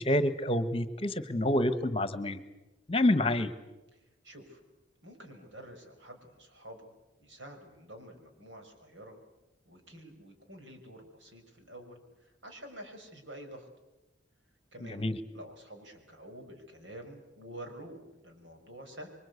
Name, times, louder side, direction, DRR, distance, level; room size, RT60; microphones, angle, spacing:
voice 1, 0.0-2.4 2.9-3.5 14.8-15.2, left 1 dB, 30° left, 12 dB, 1.2 m, -28 dB
voice 2, 3.9-4.6 5.0-6.9 7.2-9.2 9.7-13.7 14.7-19.1, right 1 dB, 80° right, 4 dB, 5.6 m, -49 dB
27.0 x 24.0 x 8.3 m, 1.0 s
head